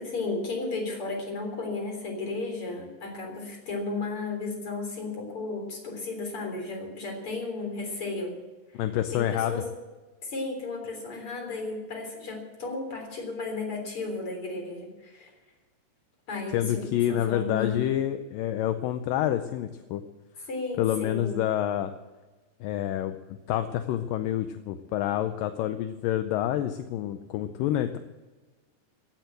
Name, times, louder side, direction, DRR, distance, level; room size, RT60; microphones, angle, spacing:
voice 1, 0.0-8.4 8.7-8.8 9.1-9.7 10.2-15.3 16.3-16.9 17.3-17.9 20.5-21.4, left 3 dB, 40° left, 2 dB, 4.3 m, -34 dB
voice 2, 8.8-9.6 16.5-20.0 20.8-21.9 22.6-28.0, left 12 dB, 80° left, 9 dB, 2.3 m, -28 dB
16.0 x 9.1 x 7.9 m, 1.2 s
omnidirectional pair, 4.0 m